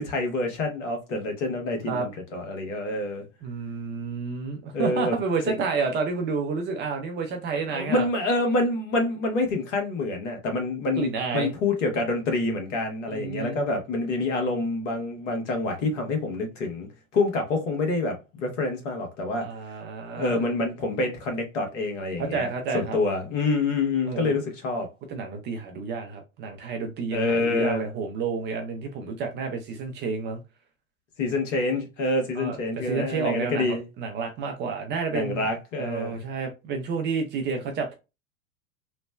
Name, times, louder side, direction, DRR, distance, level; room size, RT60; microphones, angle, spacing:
voice 1, 0.0-3.2 4.7-5.2 5.5-5.6 7.7-11.1 11.3-19.5 20.1-24.9 27.1-27.9 31.2-33.8 35.1-36.2, left 2 dB, 60° left, 1.2 m, -27 dB
voice 2, 3.4-8.1 11.0-11.5 13.1-13.6 19.4-20.4 22.2-23.0 24.1-24.4 25.1-30.4 32.4-32.6 32.8-35.4 35.8-37.9, right 5 dB, 25° right, 0.5 m, -30 dB
3.1 x 2.1 x 2.2 m
figure-of-eight pair, 90°, 42 cm